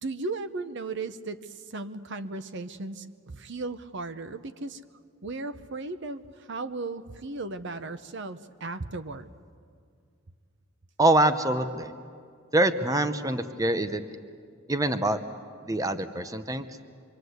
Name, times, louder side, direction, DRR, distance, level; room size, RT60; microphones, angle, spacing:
voice 1, 0.0-4.8 5.2-9.3, right 3 dB, 60° right, 12 dB, 0.9 m, -36 dB
voice 2, 11.0-11.9 12.5-14.0 14.7-15.2 15.6-16.7, right 2 dB, 15° right, 10 dB, 0.9 m, -24 dB
25.5 x 25.0 x 8.1 m, 2.2 s
head